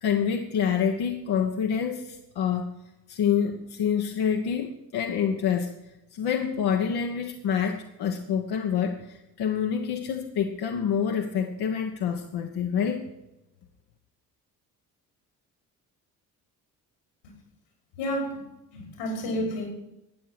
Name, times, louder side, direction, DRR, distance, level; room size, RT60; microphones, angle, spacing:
voice 1, 0.0-2.7 3.1-5.7 6.1-13.0, left 7 dB, 55° left, 3 dB, 1.3 m, -27 dB
voice 2, 18.0-18.4 18.7-19.7, equal, 80° left, 0 dB, 4.8 m, -30 dB
13.0 x 9.1 x 6.0 m, 0.92 s
figure-of-eight pair, 45°, 47 cm